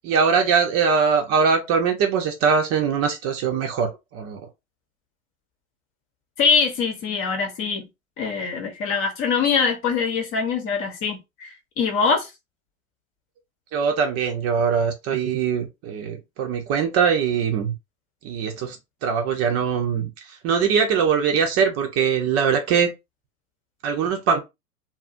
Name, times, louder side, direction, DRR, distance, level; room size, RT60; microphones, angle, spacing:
voice 1, 0.0-4.4 13.7-17.7 18.2-18.8 19.0-22.9 23.8-24.4, right 6 dB, 35° right, 0.7 m, -22 dB
voice 2, 6.4-7.9 8.2-12.3, left 5 dB, 30° left, 0.9 m, -23 dB
2.7 x 2.5 x 2.5 m
hypercardioid pair, 105°, 41 cm